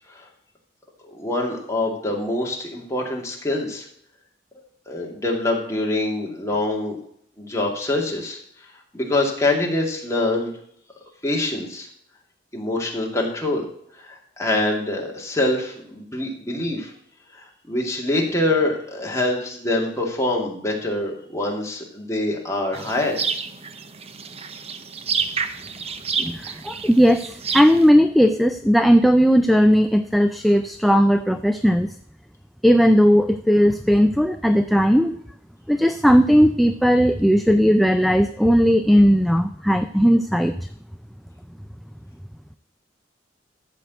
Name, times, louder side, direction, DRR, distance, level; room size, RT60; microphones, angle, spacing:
voice 1, 1.0-3.9 4.9-7.0 7.4-8.4 8.9-10.5 11.2-11.9 12.5-13.6 13.9-16.9 17.3-23.2, left 2 dB, 15° left, -1 dB, 2.3 m, -25 dB
sound 1, 22.7-27.9, right 6 dB, 35° right, 0.7 m, -29 dB
voice 2, 26.2-31.9 32.6-35.2 35.7-40.5, equal, ahead, 8 dB, 0.4 m, -17 dB
13.5 x 4.6 x 8.1 m, 0.69 s
head